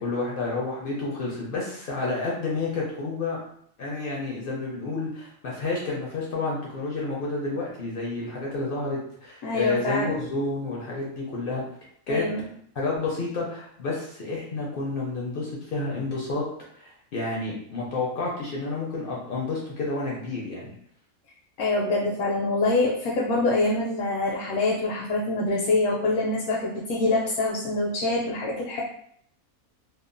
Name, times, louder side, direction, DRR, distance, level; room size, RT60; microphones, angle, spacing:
voice 1, 0.0-3.4 3.8-11.6 12.1-12.3 12.7-16.4 16.7-20.7, left 3 dB, 65° left, -4 dB, 0.5 m, -30 dB
voice 2, 9.4-10.1 12.1-12.5 21.6-28.8, left 2 dB, 80° left, -3 dB, 1.0 m, -25 dB
2.8 x 2.1 x 2.5 m, 0.66 s
omnidirectional pair, 1.5 m